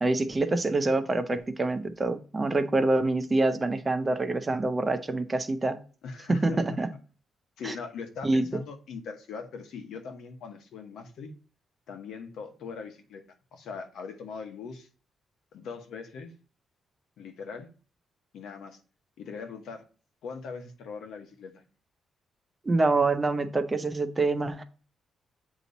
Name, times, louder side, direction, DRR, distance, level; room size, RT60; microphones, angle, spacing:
voice 1, 0.0-5.8 6.3-6.9 7.6-7.7 8.2-8.5 22.6-24.6, right 2 dB, 20° right, 9 dB, 0.5 m, -26 dB
voice 2, 6.0-6.6 7.6-11.3 11.9-13.2 13.5-14.9 15.5-16.3 17.2-17.7 18.3-18.8 19.2-19.8 20.2-21.6, left 5 dB, 80° left, 5 dB, 1.1 m, -40 dB
8.2 x 3.0 x 4.0 m, 0.37 s
wide cardioid pair, 170°, 0 cm